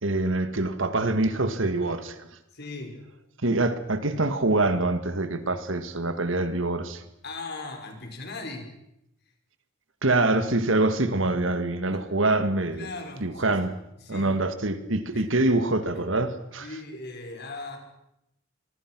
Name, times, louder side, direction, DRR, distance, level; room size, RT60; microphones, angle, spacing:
voice 1, 0.0-2.3 3.4-7.0 10.0-12.9 13.2-13.7 14.1-16.7, right 2 dB, 70° right, 1.9 m, -25 dB
voice 2, 2.5-3.0 7.2-8.7 11.9-12.0 12.7-13.6 14.0-14.4 15.1-15.3 16.6-17.8, left 3 dB, 55° left, 5.4 m, -38 dB
25.5 x 23.0 x 6.2 m
head